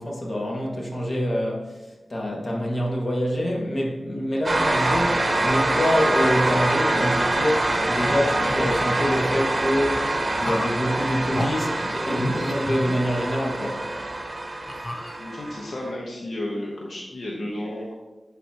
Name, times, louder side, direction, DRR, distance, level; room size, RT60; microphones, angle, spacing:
voice 1, 0.0-1.8 2.1-10.1 10.3-13.9, equal, 55° left, -2 dB, 1.6 m, -26 dB
sound 1, 4.4-15.9, right 2 dB, 40° right, 0.9 m, -25 dB
sound 2, 8.0-9.5 10.4-10.8 11.3-11.5 12.1-13.4 13.9-14.0 14.7-15.6, left 1 dB, 35° left, 0.7 m, -33 dB
voice 2, 15.2-17.9, left 1 dB, 90° left, -3 dB, 1.0 m, -32 dB
12.0 x 4.1 x 2.9 m, 1.1 s
wide cardioid pair, 60°, 0 cm